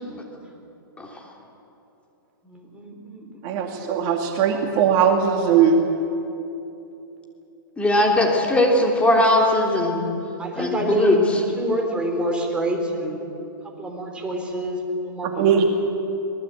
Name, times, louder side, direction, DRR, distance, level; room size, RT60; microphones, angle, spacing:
voice 1, 0.0-0.5 2.4-3.7 8.0-8.1 10.4-11.2 11.5-13.2 13.8-15.6, right 1 dB, 10° right, 1 dB, 4.3 m, -27 dB
voice 2, 3.4-5.8 15.4-15.7, right 7 dB, 40° right, 2 dB, 2.6 m, -19 dB
voice 3, 7.8-10.1 10.6-11.4, left 1 dB, 10° left, -1 dB, 3.4 m, -19 dB
24.5 x 20.0 x 8.6 m, 2.9 s
hypercardioid pair, 130°, 12 cm